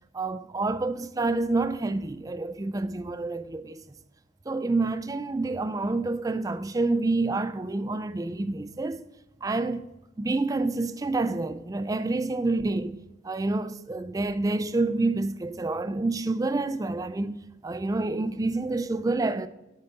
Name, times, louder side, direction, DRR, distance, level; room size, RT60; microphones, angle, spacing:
voice 1, 0.1-3.8 4.5-9.0 9.4-9.9 10.2-12.9 13.2-19.5, right 2 dB, 20° right, 0.3 m, -28 dB
7.6 x 7.2 x 4.0 m
head